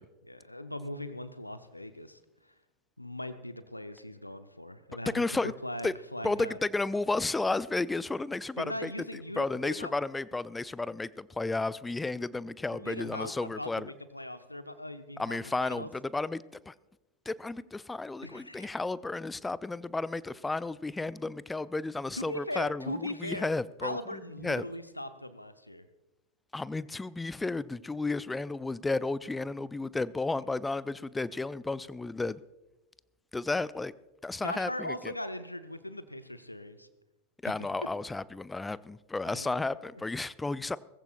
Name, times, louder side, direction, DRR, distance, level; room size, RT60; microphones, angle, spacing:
voice 1, 0.0-2.5 3.0-6.6 8.6-9.9 12.7-15.9 18.2-18.8 22.2-23.5 23.8-25.9 34.4-36.9 37.4-37.7 39.2-39.7, left 1 dB, 85° left, 11 dB, 0.8 m, -40 dB
voice 2, 5.1-5.5 5.8-5.9 6.2-13.9 15.2-16.7 17.3-24.6 26.5-32.4 33.3-33.9 34.2-35.1 37.4-40.8, left 3 dB, 10° left, 19 dB, 0.4 m, -33 dB
20.0 x 15.0 x 2.5 m, 1.0 s
figure-of-eight pair, 90°, 0 cm